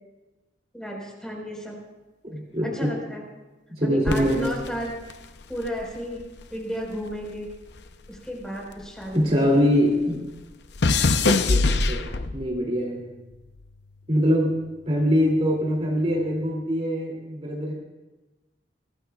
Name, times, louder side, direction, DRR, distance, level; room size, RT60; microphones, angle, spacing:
voice 1, 0.7-1.8 2.6-3.2 3.8-4.9 5.5-6.2 6.5-7.5 8.1-9.3, equal, 5° left, -2 dB, 4.6 m, -33 dB
voice 2, 2.2-3.0 3.7-4.5 9.1-10.2 11.2-13.0 14.1-14.5 14.9-17.7, equal, 35° right, -3 dB, 2.7 m, -23 dB
sound 1, 4.0-6.6 6.8-9.5 9.8-12.6 13.3-13.7, left 3 dB, 70° left, 0.7 m, -25 dB
24.5 x 18.5 x 2.4 m, 1.1 s
head